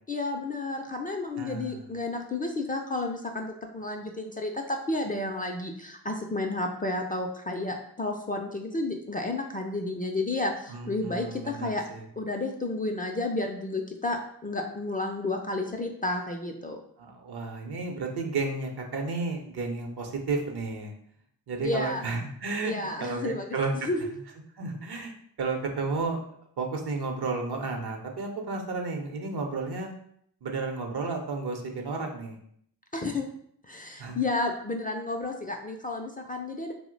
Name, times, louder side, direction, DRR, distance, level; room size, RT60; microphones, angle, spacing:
voice 1, 0.1-11.8 12.2-16.8 21.6-22.0 22.6-24.1 32.9-33.2 33.6-36.7, left 2 dB, 20° left, 3 dB, 0.4 m, -31 dB
voice 2, 1.4-1.8 10.7-12.0 17.0-20.9 21.5-23.9 24.6-25.1 25.4-26.2 26.6-29.9 30.4-32.4 34.0-34.2, right 3 dB, 60° right, 3 dB, 0.8 m, -32 dB
2.7 x 2.1 x 3.8 m, 0.67 s
supercardioid pair, 40°, 44 cm